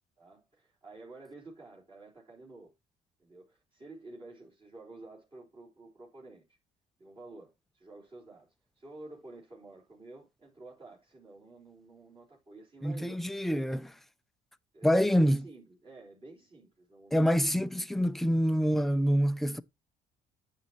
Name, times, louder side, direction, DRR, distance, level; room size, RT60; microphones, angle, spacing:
voice 1, 0.2-2.7 3.2-6.6 7.0-13.2 14.7-17.4, right 2 dB, 30° right, 3.8 m, -51 dB
voice 2, 12.8-14.0 14.8-15.5 17.1-19.6, equal, ahead, 0.5 m, -26 dB
9.3 x 7.4 x 2.8 m
cardioid pair, 110°, 17 cm